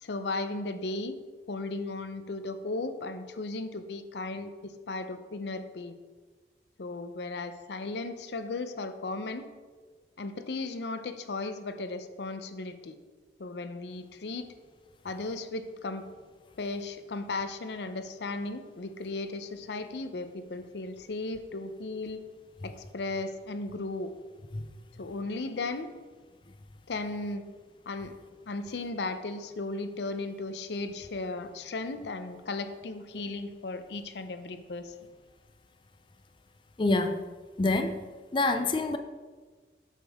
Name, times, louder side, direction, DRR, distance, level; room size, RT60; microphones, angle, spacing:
voice 1, 0.0-1.2 1.5-6.0 6.8-9.4 10.2-13.0 13.4-14.5 15.0-16.0 16.6-22.2 22.6-24.1 25.0-25.9 26.9-27.5 27.9-28.1 28.5-34.9, left 3 dB, 80° left, 0.6 m, -36 dB
voice 2, 36.8-37.3 37.6-39.0, left 2 dB, 30° left, 0.4 m, -27 dB
8.1 x 6.2 x 3.5 m
head